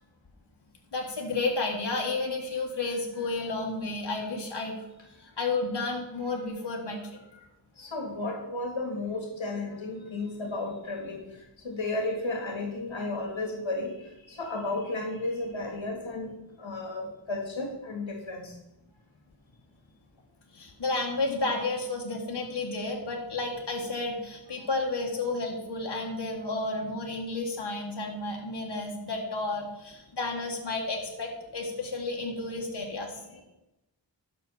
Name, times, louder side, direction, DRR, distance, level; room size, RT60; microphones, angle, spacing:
voice 1, 0.9-4.8 5.2-7.5 20.5-33.1, left 3 dB, 60° left, 0 dB, 1.7 m, -32 dB
voice 2, 7.8-11.2 11.6-13.9 14.3-18.5 24.6-24.7 32.5-32.6 33.3-33.4, left 2 dB, 80° left, 2 dB, 1.8 m, -33 dB
12.0 x 5.9 x 4.2 m, 0.93 s
cardioid pair, 40°, 46 cm